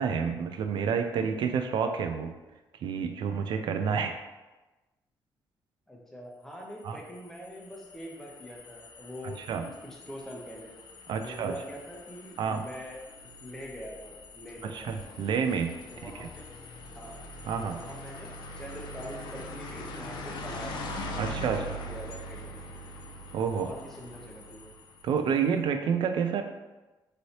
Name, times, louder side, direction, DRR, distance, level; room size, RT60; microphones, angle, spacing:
voice 1, 0.0-2.3 2.8-4.2 6.8-7.0 9.5-9.7 11.1-11.5 12.4-12.6 14.6-16.3 17.5-17.8 21.2-21.7 23.3-23.7 25.0-26.4, right 6 dB, 70° right, 7 dB, 0.3 m, -29 dB
voice 2, 5.9-10.7 11.2-13.0 13.4-14.9 15.9-16.5 16.9-17.3 17.6-20.8 21.4-22.8 23.5-24.8, equal, 5° left, -1 dB, 0.6 m, -44 dB
sound 1, 6.8-25.3, left 1 dB, 65° left, 0.4 m, -43 dB
3.1 x 2.7 x 2.8 m, 1.1 s
cardioid pair, 115°, 8 cm